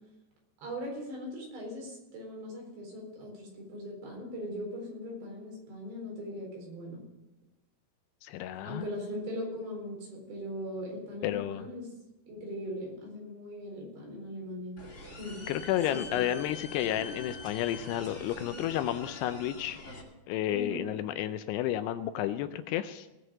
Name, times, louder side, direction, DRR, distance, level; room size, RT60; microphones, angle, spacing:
voice 1, 0.6-7.0 8.6-11.9 12.3-14.8 15.2-15.4 15.9-16.2 20.5-20.8, equal, 80° right, -1 dB, 6.5 m, -39 dB
voice 2, 8.2-8.8 11.2-11.6 15.5-19.8 20.3-23.1, left 12 dB, 80° left, 11 dB, 2.5 m, -31 dB
sound 1, 14.8-20.0, left 2 dB, 30° left, 1.3 m, -44 dB
19.0 x 6.4 x 7.7 m, 1.0 s
omnidirectional pair, 5.0 m